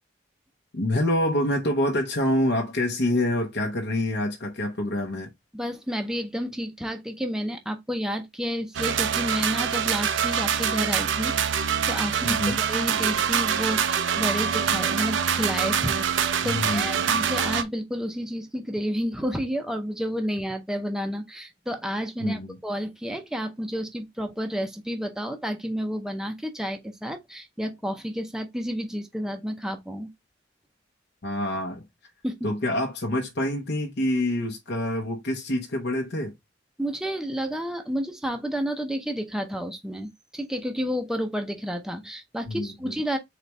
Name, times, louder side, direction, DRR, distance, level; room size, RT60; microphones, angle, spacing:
voice 1, 0.7-5.3 12.2-12.6 16.5-17.2 22.2-22.6 31.2-31.8 32.4-36.3 42.5-42.9, left 1 dB, 60° left, 0.8 m, -26 dB
voice 2, 5.5-30.1 32.2-32.5 36.8-43.2, equal, 5° right, 0.6 m, -31 dB
cyberpunk heist, 8.7-17.6, right 8 dB, 70° right, 0.5 m, -25 dB
4.1 x 3.0 x 3.3 m
head